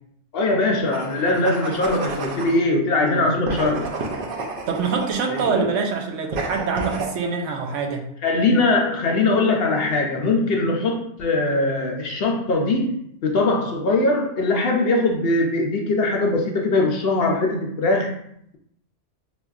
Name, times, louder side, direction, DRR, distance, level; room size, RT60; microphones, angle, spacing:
voice 1, 0.3-3.8 5.3-5.7 8.2-13.0 13.2-18.1, left 2 dB, 65° left, 1 dB, 0.7 m, -21 dB
sound 1, 0.9-2.6 3.4-5.6 6.3-7.1, right 3 dB, 55° right, 0.7 m, -31 dB
voice 2, 4.7-8.0, right 5 dB, 85° right, 4 dB, 1.0 m, -25 dB
5.1 x 2.4 x 2.3 m, 0.71 s
omnidirectional pair, 1.3 m